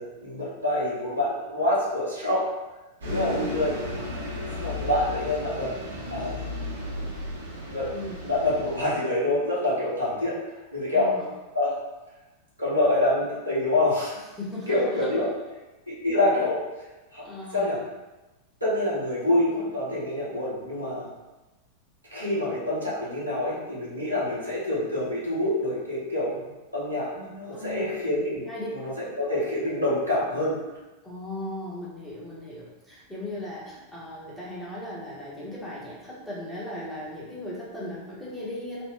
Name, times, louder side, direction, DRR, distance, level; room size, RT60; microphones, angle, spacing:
voice 1, 0.0-2.5 3.0-3.7 4.6-5.7 6.1-6.5 6.9-7.1 7.7-7.9 8.2-10.4 10.7-11.1 11.5-11.7 12.6-14.1 14.7-15.3 15.9-16.6 17.1-17.2 17.5-17.8 18.6-21.1 22.1-26.4 26.7-28.4 28.7-28.9 29.2-30.6, left 1 dB, 85° right, -8 dB, 1.1 m, -26 dB
Bus, 3.0-8.8, left 2 dB, 65° right, 0.7 m, -34 dB
voice 2, 3.1-3.5 7.9-8.2 10.9-11.3 14.1-15.3 17.2-17.8 22.2-22.4 27.5-27.9 28.5-28.7 29.0-29.1 31.0-38.8, left 1 dB, 10° left, -7 dB, 1.0 m, -37 dB
3.1 x 2.1 x 3.7 m, 1.1 s
figure-of-eight pair, 90°, 0 cm